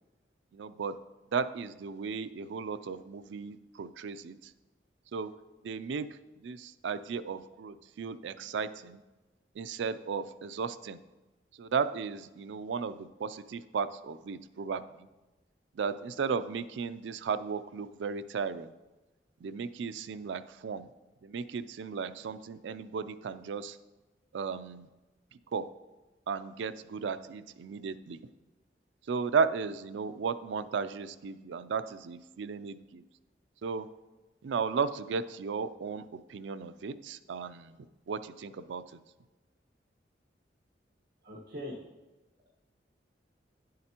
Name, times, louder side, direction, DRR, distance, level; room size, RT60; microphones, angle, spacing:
voice 1, 0.5-0.9 1.3-4.5 5.1-5.3 5.6-9.0 9.6-11.0 11.5-15.1 15.7-18.7 19.4-20.9 21.2-23.8 24.3-24.9 25.5-25.6 26.3-28.2 29.1-33.0 33.6-33.9 34.4-37.8 38.1-38.8, right 5 dB, 80° right, 12 dB, 0.4 m, -35 dB
voice 2, 41.2-41.8, left 1 dB, 60° right, -5 dB, 1.3 m, -41 dB
10.0 x 7.6 x 2.9 m, 1.1 s
head